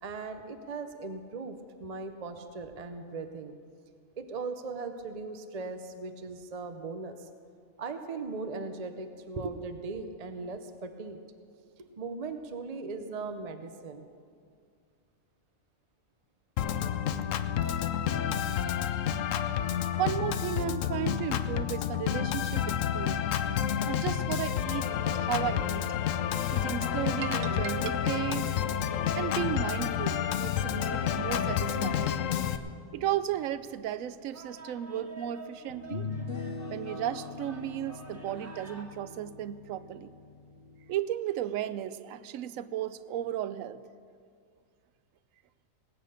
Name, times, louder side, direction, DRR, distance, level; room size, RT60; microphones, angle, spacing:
voice 1, 0.0-3.6 4.2-7.3 7.8-11.2 11.8-14.1, right 4 dB, 40° right, 7 dB, 0.7 m, -38 dB
Organ, 16.6-32.6, left 9 dB, 70° left, 1.0 m, -30 dB
voice 2, 20.0-23.2 23.9-25.8 26.5-28.5 29.2-32.1 32.9-36.1 36.7-40.1 40.9-43.8, right 11 dB, 75° right, 15 dB, 1.0 m, -34 dB
sound 1, 29.4-38.8, right 2 dB, 10° right, 1.6 m, -52 dB
sound 2, 34.6-34.7 35.7-41.0, left 4 dB, 45° left, 1.0 m, -41 dB
19.0 x 8.8 x 6.5 m, 2.2 s
omnidirectional pair, 1.4 m